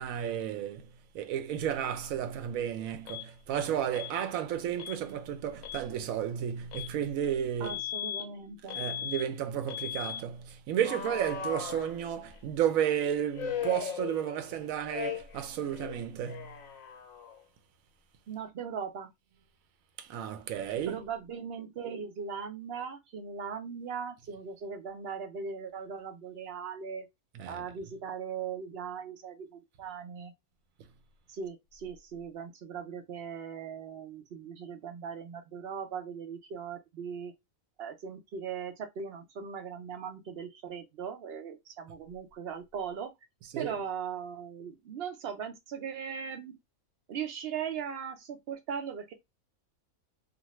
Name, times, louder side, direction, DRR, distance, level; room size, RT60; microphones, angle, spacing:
voice 1, 0.0-7.8 8.7-16.5 20.0-21.0 27.3-27.6 43.5-43.8, right 9 dB, 80° right, 1.0 m, -32 dB
Alarm, 3.1-3.3 3.9-4.2 4.8-5.0 5.5-5.9 6.7-6.9 7.6-8.2 8.7-9.2 9.7-10.2 10.8-12.4 13.3-14.5 14.9-15.4 15.7-17.4, left 9 dB, 85° left, 1.0 m, -38 dB
voice 2, 7.6-8.8 18.3-19.1 20.9-27.1 27.5-30.3 31.3-37.3 37.8-43.1 43.6-46.6 47.1-49.1, right 7 dB, 60° right, 0.7 m, -39 dB
2.5 x 2.5 x 2.9 m
omnidirectional pair, 1.4 m